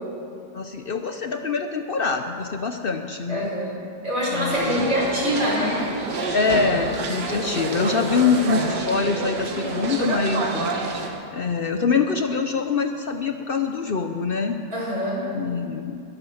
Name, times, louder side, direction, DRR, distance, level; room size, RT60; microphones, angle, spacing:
voice 1, 0.5-3.5 4.3-4.9 6.3-10.7 11.3-14.6 15.3-16.0, left 5 dB, 65° left, 6 dB, 0.5 m, -24 dB
voice 2, 3.3-3.8 4.0-5.9 14.7-15.2, equal, 50° right, -6 dB, 5.2 m, -24 dB
sound 1, 4.5-11.1, right 3 dB, 80° right, 2.0 m, -28 dB
21.0 x 8.0 x 7.1 m, 2.5 s
omnidirectional pair, 1.8 m